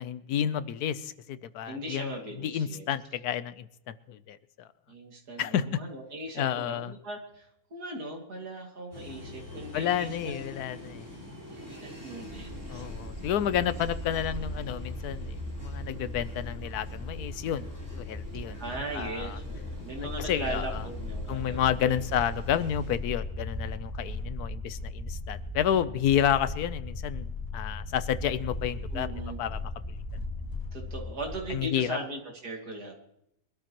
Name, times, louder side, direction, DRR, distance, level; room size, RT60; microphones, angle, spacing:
voice 1, 0.0-4.7 5.4-5.8 6.4-6.9 9.7-11.0 12.7-18.6 18.9-19.4 20.2-20.8 21.3-29.1 29.4-29.6 29.9-30.0 31.5-32.0, left 9 dB, 75° left, 14 dB, 1.2 m, -30 dB
voice 2, 1.7-2.8 4.9-10.4 11.5-12.9 13.4-13.7 18.6-22.0 28.9-29.4 30.7-32.9, right 1 dB, 80° right, 1 dB, 2.9 m, -39 dB
sound 1, 8.9-23.0, right 1 dB, 10° right, 4.2 m, -44 dB
sound 2, 12.3-31.6, left 2 dB, 15° left, 2.3 m, -38 dB
23.0 x 13.0 x 3.0 m, 0.77 s
omnidirectional pair, 1.7 m